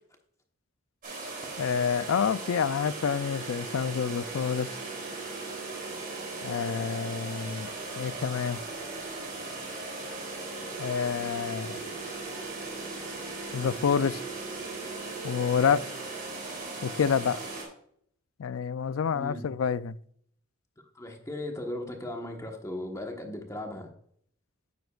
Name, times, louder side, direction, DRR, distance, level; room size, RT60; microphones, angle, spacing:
sound 1, 1.0-17.6, right 3 dB, 45° right, 3.2 m, -38 dB
voice 1, 1.6-4.7 6.4-7.7 8.0-8.6 10.8-11.8 13.5-14.2 15.2-15.8 16.8-17.4 18.4-20.0, left 7 dB, 80° left, 0.4 m, -28 dB
voice 2, 19.1-19.4 20.9-23.9, left 1 dB, 15° left, 1.2 m, -37 dB
9.5 x 7.9 x 2.4 m
head